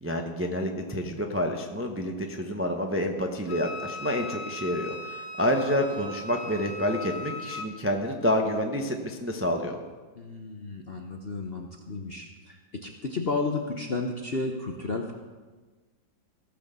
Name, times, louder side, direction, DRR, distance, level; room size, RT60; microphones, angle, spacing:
voice 1, 0.0-9.8, equal, 15° right, 2 dB, 0.4 m, -28 dB
Wind instrument woodwind instrument, 3.5-7.7, left 2 dB, 70° left, 3.0 m, -38 dB
voice 2, 10.1-15.1, left 3 dB, 50° left, 2 dB, 0.7 m, -32 dB
17.0 x 6.2 x 6.9 m, 1.3 s
omnidirectional pair, 2.1 m